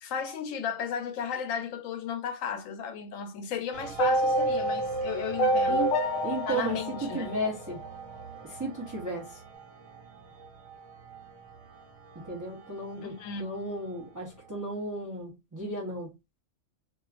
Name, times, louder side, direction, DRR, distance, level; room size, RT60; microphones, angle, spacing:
voice 1, 0.0-5.9 6.5-7.4 13.0-13.4, left 7 dB, 85° left, 1.0 m, -34 dB
sound 1, 3.7-14.9, right 6 dB, 75° right, 1.1 m, -46 dB
sound 2, 4.0-8.2, right 1 dB, 65° left, 0.5 m, -27 dB
voice 2, 6.2-7.8 8.4-9.4 12.1-16.1, right 1 dB, 25° right, 0.4 m, -34 dB
2.3 x 2.3 x 2.3 m
omnidirectional pair, 1.3 m